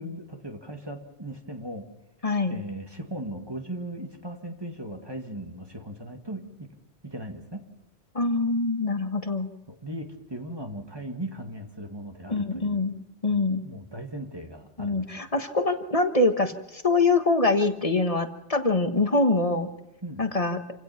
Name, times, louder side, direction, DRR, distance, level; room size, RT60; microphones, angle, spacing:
voice 1, 0.0-1.9 2.2-6.7 7.0-7.6 9.7-12.9 13.3-15.1 20.0-20.3, right 1 dB, 20° right, 3 dB, 2.0 m, -38 dB
voice 2, 2.2-2.6 8.1-9.5 12.3-13.0 13.2-13.6 14.8-19.7 20.2-20.6, left 3 dB, 30° left, 7 dB, 1.4 m, -24 dB
27.5 x 16.5 x 5.8 m, 0.86 s
omnidirectional pair, 1.2 m